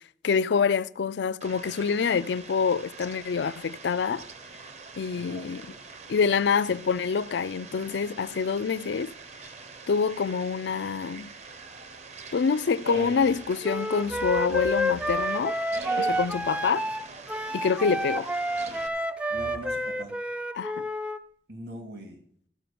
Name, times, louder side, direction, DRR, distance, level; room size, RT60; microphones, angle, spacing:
voice 1, 0.2-4.2 5.0-5.6 6.1-9.1 9.9-11.3 12.3-15.6 16.0-16.9 17.5-18.3 20.6-20.8, left 5 dB, 80° left, 0.4 m, -26 dB
Fowl, 1.4-18.9, right 4 dB, 40° right, 0.8 m, -45 dB
voice 2, 5.1-5.6 16.8-16.9 17.9-18.0 18.9-19.0 19.3-20.2 21.5-22.2, right 1 dB, 65° right, 2.0 m, -42 dB
sound 1, 12.8-13.5 14.0-15.2 15.7-16.5 18.4-18.9 19.3-20.0, right 2 dB, 85° right, 5.1 m, -39 dB
Wind instrument woodwind instrument, 13.6-21.2, equal, 5° right, 0.4 m, -29 dB
14.0 x 5.0 x 6.9 m
head